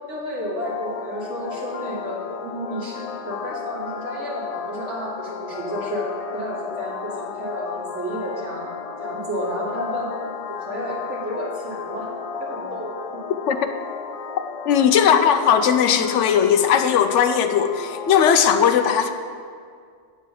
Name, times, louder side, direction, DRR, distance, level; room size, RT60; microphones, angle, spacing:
voice 1, 0.1-10.1 10.5-12.1 12.4-13.2, equal, 75° right, -5 dB, 2.4 m, -31 dB
sound 1, 0.6-18.6, left 6 dB, 65° left, 0.3 m, -34 dB
voice 2, 14.6-19.1, left 8 dB, 80° left, 8 dB, 0.9 m, -18 dB
9.3 x 4.6 x 7.4 m, 2.1 s
omnidirectional pair, 1.2 m